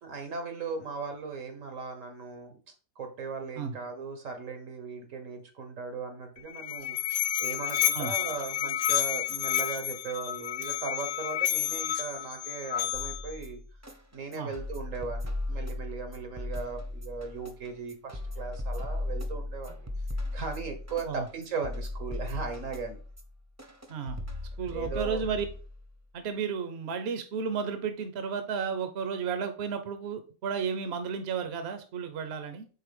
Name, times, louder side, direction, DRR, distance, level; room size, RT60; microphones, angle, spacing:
voice 1, 0.0-2.6 2.9-7.0 7.4-13.6 14.1-19.9 20.3-23.0 24.7-25.2, right 4 dB, 85° right, 1.7 m, -38 dB
Musical instrument, 6.4-13.3, left 11 dB, 60° left, 0.8 m, -30 dB
sound 1, 12.9-25.9, left 2 dB, 15° right, 0.7 m, -37 dB
voice 2, 23.9-24.2 24.6-25.4 26.1-32.7, right 6 dB, 60° right, 1.0 m, -33 dB
4.7 x 4.0 x 5.1 m
omnidirectional pair, 1.3 m